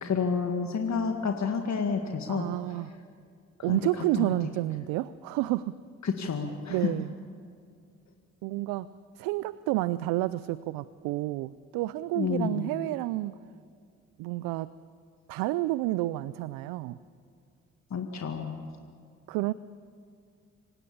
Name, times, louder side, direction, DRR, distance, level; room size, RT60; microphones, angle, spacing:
voice 1, 0.0-2.5 3.7-3.8 4.2-4.3 6.0-6.9 12.2-12.7 17.9-18.5, left 5 dB, 50° left, 4 dB, 1.9 m, -29 dB
voice 2, 2.3-2.9 3.6-5.8 6.7-7.1 8.4-8.9 9.2-13.3 14.2-14.7 15.3-17.0 19.3-19.5, right 17 dB, 80° right, 17 dB, 0.5 m, -30 dB
27.0 x 17.0 x 8.6 m, 2.3 s
hypercardioid pair, 40°, 34 cm